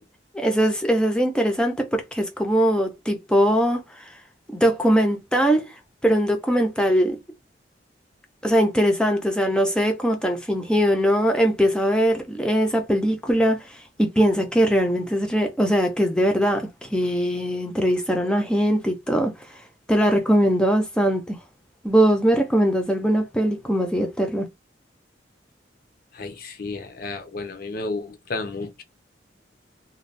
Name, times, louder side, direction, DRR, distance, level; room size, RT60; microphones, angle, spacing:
voice 1, 0.3-3.8 4.5-5.7 6.0-7.2 8.4-19.3 19.9-21.4 21.8-24.5, equal, 5° left, 0.5 m, -21 dB
voice 2, 26.1-28.8, left 3 dB, 50° left, 0.6 m, -32 dB
2.6 x 2.2 x 3.2 m
head